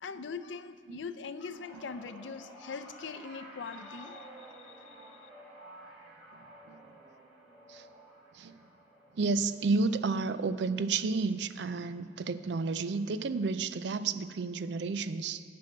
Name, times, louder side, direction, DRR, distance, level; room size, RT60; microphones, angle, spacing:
voice 1, 0.0-5.2, left 5 dB, 80° left, 12 dB, 0.5 m, -42 dB
sound 1, 1.5-12.0 12.3-12.7 13.8-13.9, right 1 dB, 5° right, 3.0 m, -53 dB
voice 2, 6.3-6.8 7.7-7.9 8.3-8.6 9.1-15.4, right 4 dB, 65° right, 13 dB, 0.4 m, -31 dB
10.5 x 6.1 x 7.4 m, 2.1 s
head